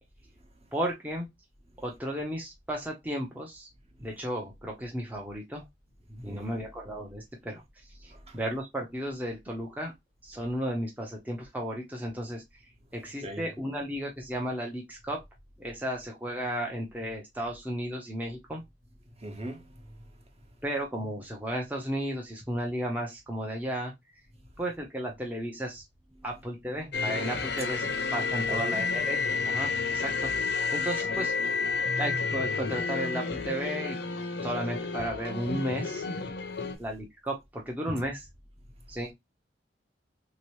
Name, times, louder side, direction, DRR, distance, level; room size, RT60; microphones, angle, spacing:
voice 1, 0.7-1.3 1.8-3.7 4.0-5.6 6.1-7.6 8.0-9.9 10.2-12.4 12.9-15.2 15.6-18.6 20.6-23.9 24.6-25.8 26.2-31.3 32.0-34.0 34.4-36.0 36.8-38.3 38.9-39.1, equal, 10° right, 0.6 m, -34 dB
voice 2, 6.3-6.6 8.3-8.4 13.2-13.4 19.2-19.6 28.5-28.8 31.0-31.8, right 1 dB, 35° right, 1.0 m, -39 dB
sound 1, 26.9-36.8, left 4 dB, 65° left, 0.6 m, -30 dB
3.3 x 2.9 x 3.0 m
head